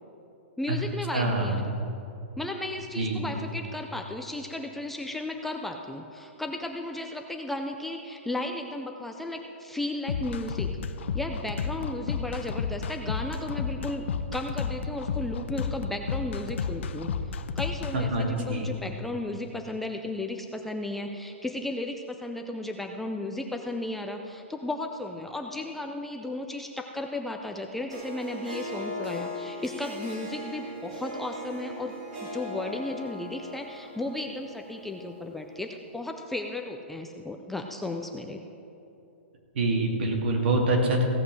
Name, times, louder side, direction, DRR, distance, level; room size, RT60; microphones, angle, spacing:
voice 1, 0.6-1.8 2.4-10.7 11.1-31.9 32.2-38.4, left 2 dB, 5° left, 3 dB, 0.3 m, -34 dB
voice 2, 1.1-1.6 3.0-3.3 17.9-18.7 39.5-41.0, right 2 dB, 55° right, 1 dB, 2.4 m, -25 dB
sound 1, 10.1-17.9, left 6 dB, 70° left, 0.7 m, -32 dB
Harp, 27.9-35.4, left 1 dB, 30° right, 2.6 m, -39 dB
16.0 x 5.8 x 7.6 m, 2.8 s
hypercardioid pair, 165°, 7 cm